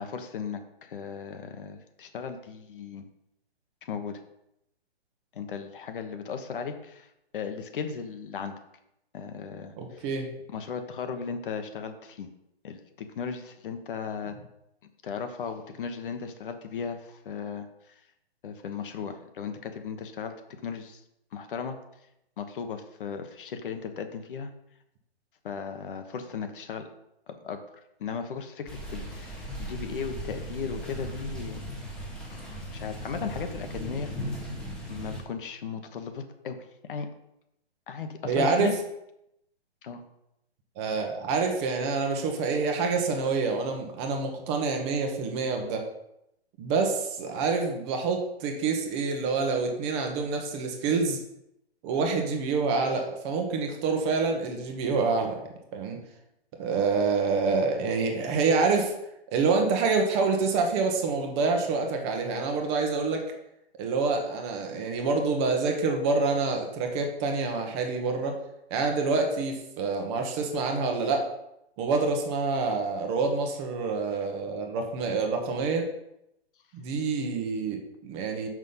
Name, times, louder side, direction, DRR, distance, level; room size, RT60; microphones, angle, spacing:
voice 1, 0.0-3.0 3.8-4.2 5.3-8.5 9.1-10.1 10.5-12.3 12.6-14.3 15.0-18.0 18.4-20.3 20.6-21.0 21.3-21.8 22.4-24.5 25.4-26.9 27.3-27.6 28.0-31.6 32.3-34.4 34.9-36.6 36.9-37.1 37.9-38.7 39.8-40.0, left 6 dB, 50° left, 7 dB, 1.2 m, -36 dB
voice 2, 9.8-10.3 38.2-38.7 40.8-45.8 46.6-51.2 51.8-55.4 55.7-56.0 56.6-58.9 59.3-63.2 63.8-68.4 68.7-71.2 71.8-75.9 76.7-78.5, right 4 dB, 25° right, 3 dB, 1.2 m, -27 dB
sound 1, 28.7-35.2, equal, ahead, 1.4 m, -37 dB
6.4 x 6.1 x 5.6 m, 0.83 s
hypercardioid pair, 145°, 33 cm